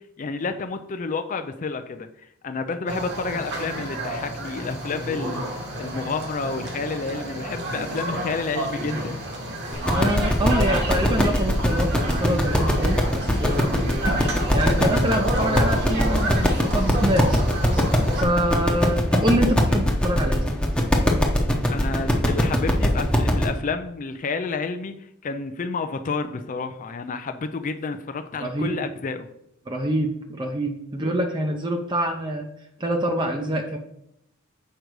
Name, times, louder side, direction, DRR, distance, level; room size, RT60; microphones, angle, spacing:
voice 1, 0.2-5.4 5.8-9.2 21.7-24.9 25.2-29.3, left 4 dB, 40° left, 8 dB, 0.4 m, -30 dB
sound 1, 2.9-18.2, right 1 dB, 55° right, 1.5 m, -30 dB
sound 2, 9.7-23.4, equal, 5° left, 0.9 m, -21 dB
voice 2, 9.9-14.3 14.5-17.4 17.7-20.5 28.4-28.8 29.7-32.5 32.8-33.8, right 1 dB, 20° right, 3 dB, 0.6 m, -26 dB
6.6 x 5.0 x 4.6 m, 0.76 s
head